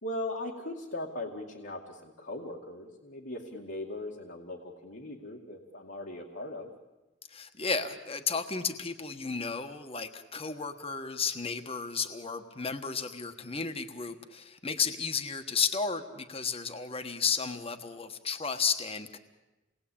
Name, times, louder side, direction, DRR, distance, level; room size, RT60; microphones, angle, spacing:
voice 1, 0.0-6.7, left 1 dB, 70° left, -1 dB, 2.4 m, -39 dB
voice 2, 7.3-19.2, left 5 dB, 30° left, 8 dB, 1.3 m, -33 dB
28.5 x 20.0 x 8.7 m, 1.1 s
head